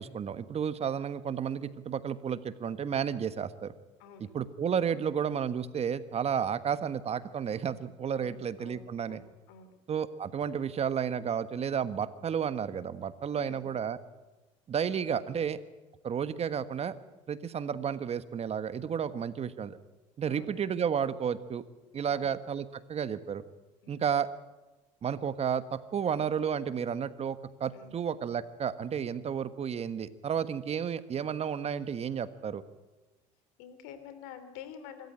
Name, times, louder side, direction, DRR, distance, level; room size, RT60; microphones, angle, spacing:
voice 1, 0.0-3.7 4.2-9.2 9.9-14.0 14.7-15.6 16.0-16.9 17.3-19.8 20.2-21.6 21.9-23.4 23.9-24.3 25.0-32.6, right 7 dB, 40° right, 13 dB, 1.4 m, -32 dB
voice 2, 4.0-4.3 8.1-9.8 13.3-13.7 20.3-20.6 22.0-22.3 23.8-24.1 27.7-28.0 33.6-35.1, left 7 dB, 80° left, 10 dB, 3.2 m, -49 dB
25.0 x 13.5 x 9.9 m, 1.1 s
hypercardioid pair, 75°, 16 cm